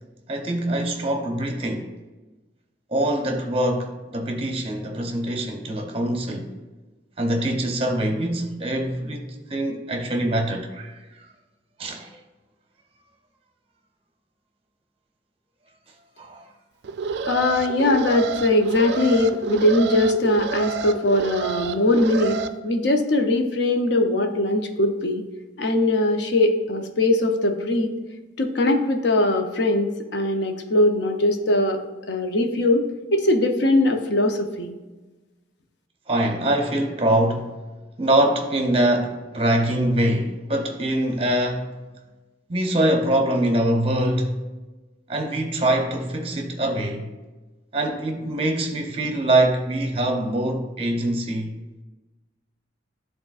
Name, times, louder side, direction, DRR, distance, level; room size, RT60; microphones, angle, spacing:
voice 1, 0.3-1.9 2.9-6.5 7.2-11.0 11.8-12.2 16.2-16.5 36.1-37.5 38.0-41.7 42.5-44.4 45.1-47.1 47.7-51.5, right 1 dB, 30° right, 0.7 m, -24 dB
Alarm, 16.8-22.5, right 5 dB, 60° right, 0.3 m, -29 dB
voice 2, 17.3-25.2 25.6-27.9 28.4-31.8 32.1-32.8 33.1-34.7, left 1 dB, 65° left, 0.6 m, -21 dB
10.5 x 3.7 x 2.4 m
head